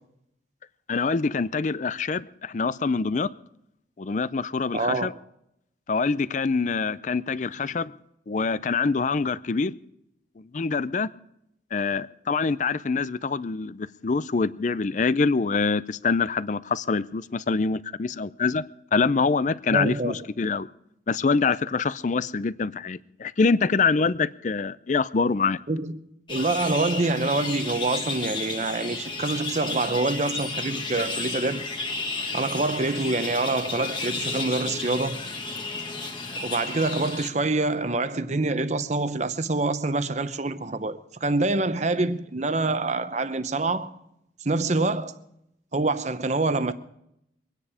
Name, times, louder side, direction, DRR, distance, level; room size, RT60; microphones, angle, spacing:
voice 1, 0.9-3.3 4.0-5.1 5.9-7.9 8.3-9.8 10.4-11.1 11.7-18.6 18.9-20.7 21.1-25.6, left 4 dB, 40° left, 0.4 m, -25 dB
voice 2, 4.7-5.1 19.7-20.2 25.7-31.7 32.3-35.3 36.4-43.9 44.4-45.1 45.7-46.7, right 2 dB, 40° right, 0.8 m, -26 dB
sound 1, 26.3-37.3, left 3 dB, 25° left, 1.6 m, -33 dB
24.0 x 9.9 x 4.9 m
head